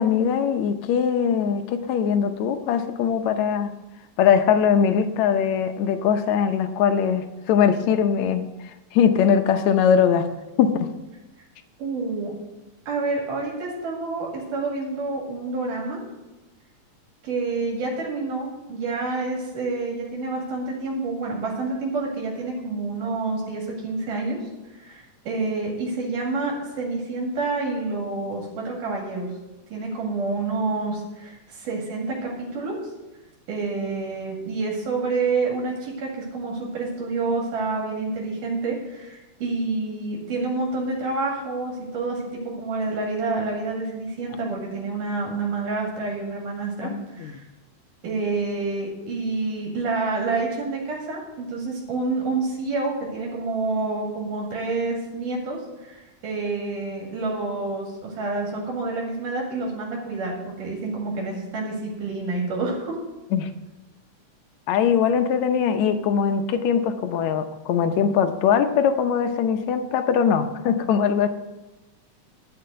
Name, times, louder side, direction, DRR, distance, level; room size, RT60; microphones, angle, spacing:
voice 1, 0.0-3.7 4.2-8.5 8.9-10.3 10.6-10.9 46.8-47.3 63.3-63.5 64.7-71.3, left 7 dB, 70° left, 8 dB, 2.0 m, -21 dB
voice 2, 11.8-12.3 12.9-16.0 17.2-24.4 24.8-29.3 29.7-32.8 33.5-47.5 48.0-63.0, right 3 dB, 80° right, -2 dB, 3.7 m, -28 dB
11.5 x 6.0 x 7.6 m, 1.1 s
omnidirectional pair, 3.6 m